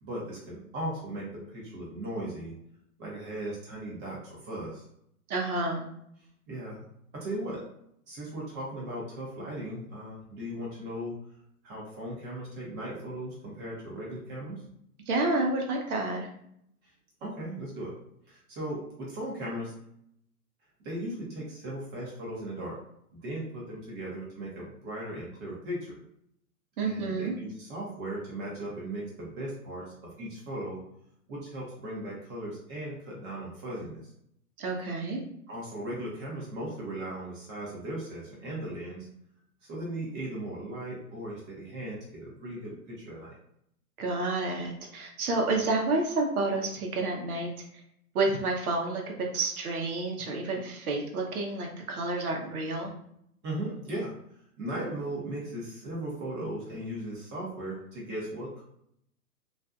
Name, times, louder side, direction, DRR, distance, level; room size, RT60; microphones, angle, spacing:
voice 1, 0.0-2.5 3.0-4.8 6.5-6.8 7.1-7.6 8.1-11.1 11.6-14.6 17.2-17.9 18.3-19.7 20.8-22.8 23.1-26.0 26.8-30.8 31.3-34.0 35.5-39.1 39.7-43.3 53.4-54.1 54.6-58.6, right 1 dB, 25° right, -4 dB, 0.6 m, -37 dB
voice 2, 5.3-5.8 15.1-16.3 26.8-27.3 34.6-35.2 44.0-47.5 48.1-52.9, right 2 dB, 70° right, 1 dB, 0.8 m, -29 dB
2.5 x 2.2 x 2.4 m, 0.73 s
hypercardioid pair, 120°, 45 cm